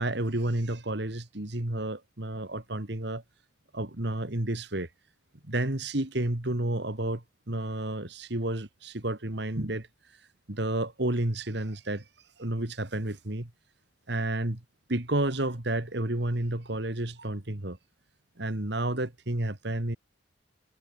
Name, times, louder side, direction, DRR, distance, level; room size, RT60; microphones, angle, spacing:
voice 1, 0.0-3.2 3.7-4.9 5.5-9.9 10.5-12.0 12.4-13.5 14.1-14.6 14.9-17.8 18.4-20.0, right 1 dB, 60° right, 2.1 m, -31 dB
head